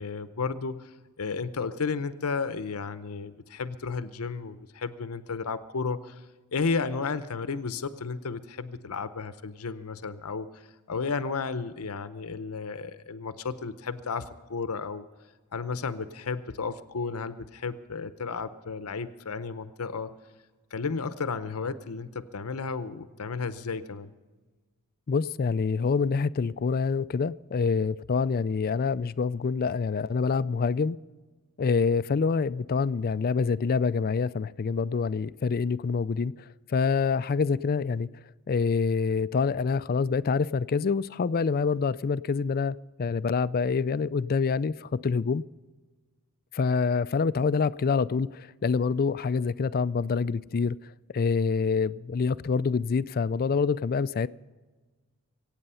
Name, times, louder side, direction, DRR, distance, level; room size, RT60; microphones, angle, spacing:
voice 1, 0.0-6.2 6.5-10.6 10.9-15.1 15.5-20.1 20.7-24.1, left 4 dB, 80° left, 12 dB, 0.7 m, -33 dB
voice 2, 25.1-31.0 31.6-36.3 36.7-38.1 38.5-45.4 46.5-50.8 51.1-54.3, left 5 dB, 40° left, 17 dB, 0.4 m, -26 dB
23.5 x 9.0 x 5.6 m, 1.3 s
head